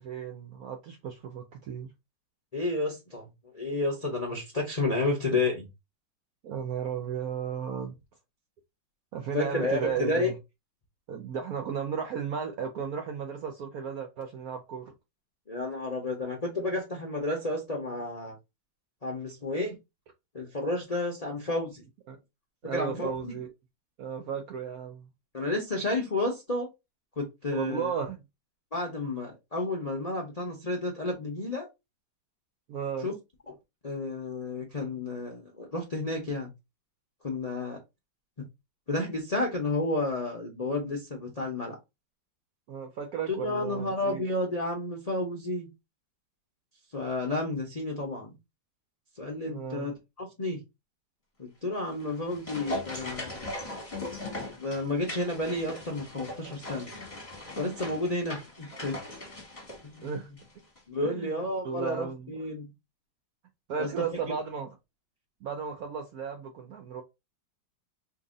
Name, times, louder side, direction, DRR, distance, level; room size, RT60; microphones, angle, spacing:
voice 1, 0.0-1.9 6.4-7.9 9.1-10.4 11.1-14.9 22.1-22.2 22.6-23.5 24.0-25.1 27.5-28.2 32.7-33.1 42.7-44.2 49.5-49.9 60.0-60.3 61.0-62.4 63.7-64.7 65.4-67.0, right 7 dB, 75° right, 0.8 m, -34 dB
voice 2, 2.5-3.3 3.5-5.7 9.3-10.3 15.5-18.4 19.0-19.8 20.3-21.8 22.7-23.3 25.3-26.7 27.2-27.9 28.7-31.7 33.0-33.1 33.5-33.6 33.8-36.5 37.2-37.8 38.4-38.5 38.9-41.8 43.3-45.7 46.9-48.3 49.2-50.6 51.4-53.5 54.6-56.9 57.6-59.0 59.8-60.1 60.9-62.7 63.8-64.3, left 2 dB, 65° left, 0.3 m, -31 dB
sound 1, 51.9-60.5 60.8-60.9, left 1 dB, 20° left, 1.0 m, -39 dB
2.8 x 2.6 x 3.8 m
omnidirectional pair, 2.1 m